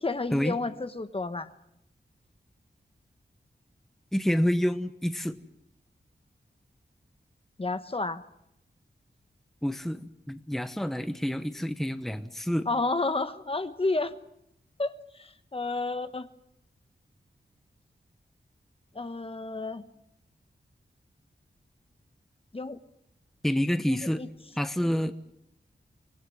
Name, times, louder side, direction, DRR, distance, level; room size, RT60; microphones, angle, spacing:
voice 1, 0.0-1.5 7.6-8.2 12.7-14.1 14.8-16.3 18.9-19.8 22.5-22.8 23.9-24.3, left 3 dB, 30° left, 10 dB, 1.2 m, -31 dB
voice 2, 4.1-5.4 9.6-12.7 23.4-24.2 24.6-25.1, equal, ahead, 9 dB, 1.0 m, -28 dB
25.0 x 18.5 x 7.8 m, 0.80 s
wide cardioid pair, 100°, 18 cm